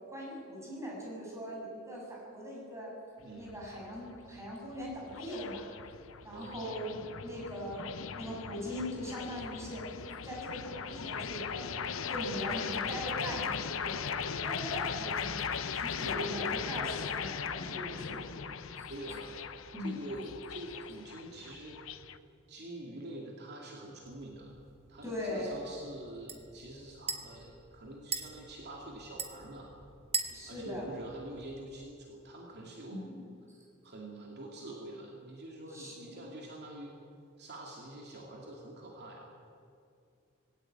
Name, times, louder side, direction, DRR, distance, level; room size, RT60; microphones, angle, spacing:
voice 1, 0.1-2.9 3.4-5.7 6.2-9.8 10.2-11.8 12.1-14.0 14.4-15.4 15.7-18.2 18.8-18.9 19.7-20.0 25.0-25.7 30.3-30.9 32.9-33.2 35.7-35.9, equal, 15° right, -3 dB, 7.5 m, -40 dB
sound 1, 3.2-22.2, left 6 dB, 75° left, 0.9 m, -38 dB
voice 2, 3.2-3.5 6.3-6.7 16.0-16.6 18.9-19.4 19.8-21.8 22.5-24.5 24.9-29.7 30.5-33.1 33.8-36.9 37.4-39.3, right 1 dB, 55° right, -1 dB, 2.6 m, -45 dB
sound 2, 24.0-31.9, right 5 dB, 30° right, 1.6 m, -43 dB
20.0 x 17.5 x 8.9 m, 2.5 s
head